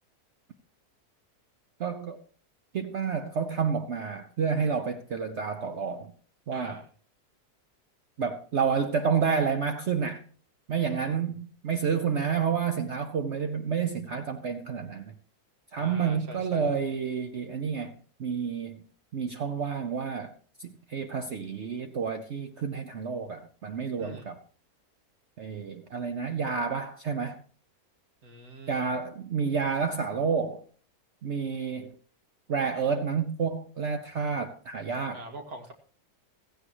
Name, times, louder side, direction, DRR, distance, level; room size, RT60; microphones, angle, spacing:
voice 1, 1.8-2.2 2.7-6.1 6.5-6.8 8.2-10.2 10.7-15.1 15.7-17.9 18.2-18.8 19.1-20.3 20.6-24.4 25.4-27.4 28.7-30.6 31.2-31.9 32.5-35.2, right 6 dB, 55° right, 0.9 m, -29 dB
voice 2, 6.5-6.9 10.7-11.2 15.8-16.7 24.0-24.3 28.2-28.9 35.1-35.7, right 1 dB, 70° right, 2.5 m, -44 dB
16.0 x 15.0 x 3.0 m
omnidirectional pair, 1.6 m